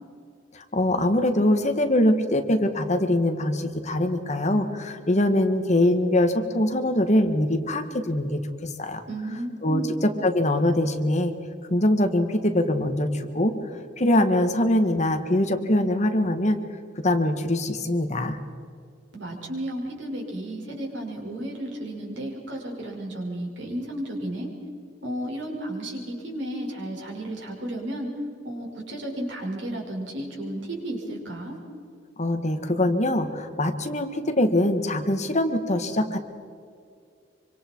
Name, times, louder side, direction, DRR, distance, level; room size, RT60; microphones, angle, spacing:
voice 1, 0.5-9.0 9.6-9.8 10.2-11.3 11.7-13.5 14.0-16.6 17.0-18.4 32.2-36.2, left 1 dB, 40° left, 7 dB, 1.8 m, -23 dB
voice 2, 9.1-9.9 19.1-24.5 25.0-28.1 28.4-31.6, right 1 dB, 85° right, -1 dB, 6.1 m, -33 dB
26.0 x 25.5 x 4.7 m, 2.3 s
head